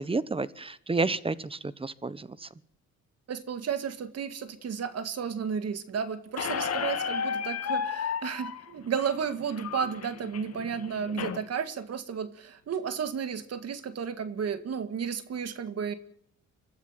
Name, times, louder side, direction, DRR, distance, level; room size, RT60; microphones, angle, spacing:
voice 1, 0.0-2.5, right 3 dB, 20° right, 17 dB, 1.1 m, -30 dB
voice 2, 3.3-15.9, right 7 dB, 55° right, 11 dB, 1.9 m, -33 dB
Squeak, 6.4-11.4, left 7 dB, 55° left, 2.3 m, -33 dB
24.0 x 12.5 x 9.0 m, 0.69 s
cardioid pair, 90°, 30 cm